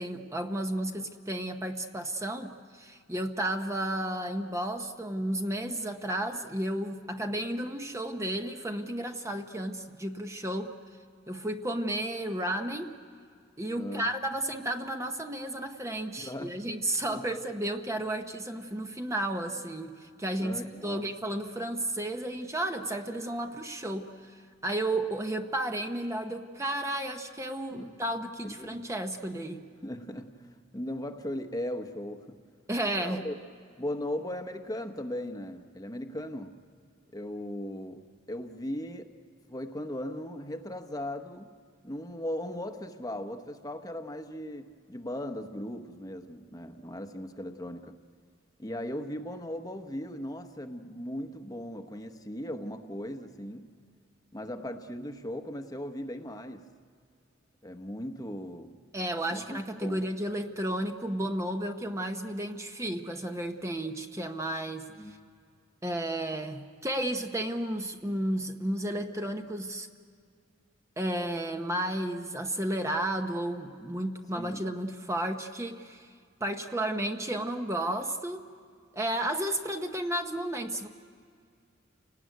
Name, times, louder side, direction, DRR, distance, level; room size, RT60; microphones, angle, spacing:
voice 1, 0.0-10.7 11.3-12.9 13.6-29.7 32.7-33.2 58.9-64.9 65.8-69.9 71.0-76.1 76.4-78.5 78.9-80.9, right 1 dB, 15° right, 5 dB, 0.9 m, -33 dB
voice 2, 13.7-14.1 16.2-16.6 17.1-17.2 20.4-21.1 27.7-28.0 28.4-28.9 29.8-32.4 33.0-33.4 33.8-36.6 37.1-39.1 39.5-41.5 41.8-48.0 48.6-53.7 54.3-56.7 57.6-58.8 59.3-60.0 65.0-65.1 74.3-74.7, left 1 dB, 20° left, 7 dB, 1.0 m, -38 dB
29.5 x 19.0 x 9.3 m, 2.3 s
head